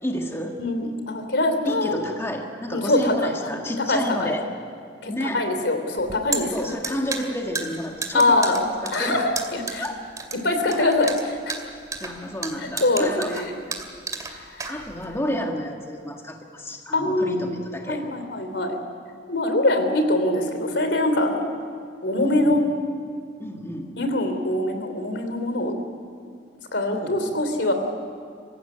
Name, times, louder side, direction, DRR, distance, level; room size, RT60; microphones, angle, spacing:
voice 1, 0.0-0.6 1.6-4.5 5.1-5.4 6.5-9.2 9.8-10.0 10.8-10.9 12.0-13.4 14.7-18.0 22.2-22.5 23.4-23.9 26.9-27.2, equal, 15° left, 2 dB, 1.7 m, -30 dB
voice 2, 0.6-2.0 2.7-3.6 3.9-4.3 5.0-6.5 8.1-8.6 8.9-9.2 9.5-9.8 10.4-11.1 11.5-11.6 12.8-13.6 14.5-14.7 16.9-17.5 17.9-18.8 19.3-21.4 22.0-22.7 24.0-25.7 26.7-27.7, left 2 dB, 75° left, 6 dB, 3.2 m, -23 dB
sound 1, 6.0-15.2, right 4 dB, 20° right, 2.3 m, -33 dB
24.5 x 15.5 x 9.8 m, 2.3 s
head